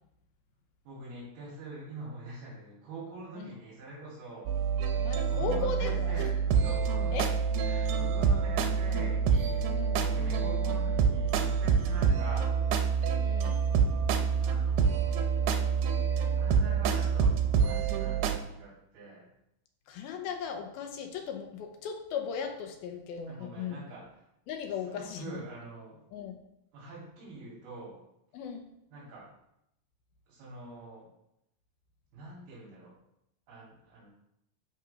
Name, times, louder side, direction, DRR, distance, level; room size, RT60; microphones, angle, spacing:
voice 1, 0.9-4.5 5.3-7.2 7.6-12.5 14.4-15.2 16.3-19.2 23.3-24.2 24.8-26.0 26.7-28.0 28.9-29.3 30.3-31.1 32.1-33.0 33.5-34.1, right 2 dB, 70° right, -7 dB, 4.5 m, -45 dB
sound 1, 4.5-18.4, right 6 dB, 90° right, 2.9 m, -27 dB
voice 2, 5.0-6.1 7.1-7.3 9.7-10.6 13.2-13.6 19.9-23.8 24.5-25.4 26.1-26.4 28.3-28.7, left 6 dB, 75° left, 4 dB, 2.7 m, -37 dB
11.5 x 4.5 x 5.5 m, 0.81 s
omnidirectional pair, 4.6 m